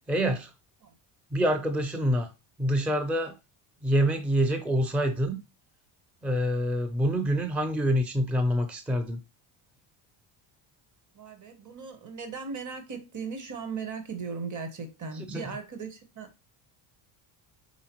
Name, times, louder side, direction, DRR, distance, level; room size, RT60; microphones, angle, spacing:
voice 1, 0.1-0.5 1.3-2.3 2.6-3.4 3.8-5.4 6.2-9.2 15.3-15.4, equal, 5° right, 0.5 m, -26 dB
voice 2, 11.1-16.5, right 5 dB, 35° right, 1.1 m, -38 dB
4.8 x 3.5 x 2.9 m
cardioid pair, 100°, 49 cm